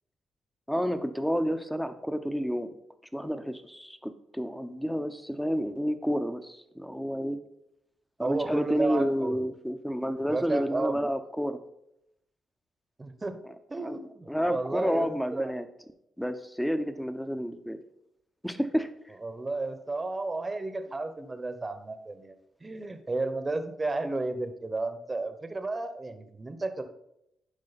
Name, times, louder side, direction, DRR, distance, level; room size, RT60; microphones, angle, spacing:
voice 1, 0.7-2.7 3.1-7.4 8.2-11.6 13.8-14.0 14.3-15.6 16.2-17.8 18.4-18.9, equal, 5° left, 10 dB, 0.9 m, -30 dB
voice 2, 8.2-9.4 10.3-11.0 13.0-13.4 13.7-15.5 19.2-26.9, right 2 dB, 30° right, 10 dB, 1.0 m, -33 dB
11.0 x 4.8 x 4.2 m, 0.80 s
hypercardioid pair, 45°, 0 cm